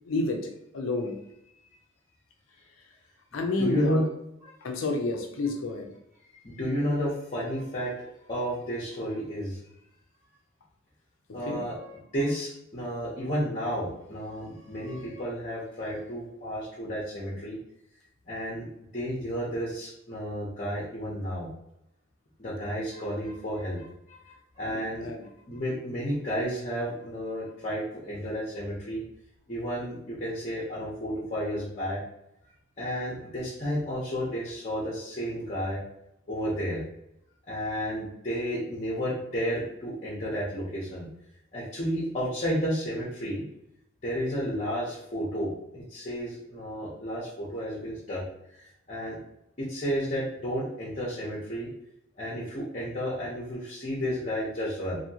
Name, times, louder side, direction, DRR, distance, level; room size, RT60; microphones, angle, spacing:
voice 1, 0.1-0.5 0.7-1.2 3.3-4.1 4.6-6.0 11.5-11.6 24.6-25.2, left 2 dB, 75° left, 4 dB, 0.5 m, -30 dB
voice 2, 3.6-4.0 4.4-4.5 6.3-7.9 8.3-9.6 11.3-17.6 18.3-18.7 18.9-21.5 22.4-25.1 25.5-29.0 29.5-32.0 32.8-35.8 36.3-36.8 37.5-41.1 41.5-43.4 44.0-48.2 48.5-49.2 49.6-51.7 52.2-55.0, equal, 35° left, -6 dB, 0.8 m, -32 dB
2.8 x 2.7 x 2.7 m, 0.81 s
head